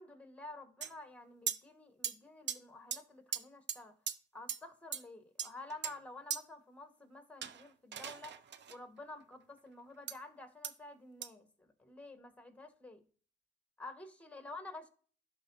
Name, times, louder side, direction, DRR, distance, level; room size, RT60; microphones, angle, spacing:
voice 1, 0.0-3.9 4.3-8.3 8.7-13.0 13.8-14.9, left 2 dB, 5° left, 1.4 m, -50 dB
sound 1, 0.8-0.9 1.5-1.6 2.0-2.1 2.5-2.6 2.9-3.0 3.3-3.4 3.7-3.8 4.1-4.2 4.5-4.6 4.9-5.0 5.4-5.9 6.3-6.4 7.4-8.8 10.1-10.2 10.6-10.7 11.2-11.3, right 8 dB, 65° right, 0.6 m, -38 dB
11.5 x 3.9 x 2.7 m
cardioid pair, 70°, 20 cm